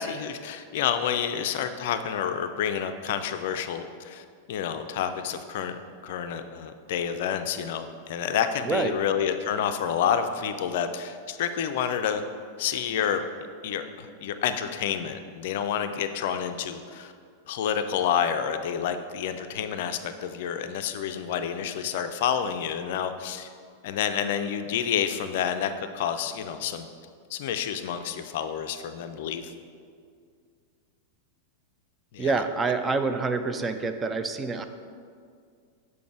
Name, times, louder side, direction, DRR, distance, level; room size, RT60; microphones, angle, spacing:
voice 1, 0.0-5.8 6.0-12.2 12.6-13.2 13.6-17.1 17.5-23.5 23.8-26.9 27.3-29.5 32.1-32.3, left 8 dB, 55° left, 9 dB, 0.4 m, -29 dB
voice 2, 8.7-9.0 32.2-34.7, right 4 dB, 20° right, 8 dB, 0.4 m, -27 dB
7.1 x 4.8 x 4.6 m, 2.2 s
figure-of-eight pair, 90°, 0 cm